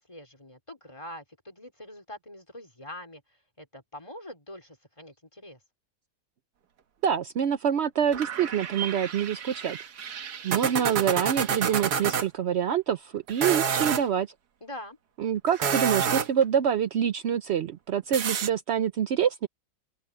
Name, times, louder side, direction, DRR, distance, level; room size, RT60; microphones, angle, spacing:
voice 1, 0.1-5.6 14.6-15.0, left 1 dB, 15° left, 3.9 m, -44 dB
voice 2, 7.0-9.8 10.4-14.3 15.2-19.5, right 8 dB, 80° right, 0.5 m, -26 dB
sound 1, 8.1-12.3 13.3-14.0 15.5-16.4 18.1-18.5, right 7 dB, 65° right, 1.8 m, -29 dB
open air
omnidirectional pair, 1.9 m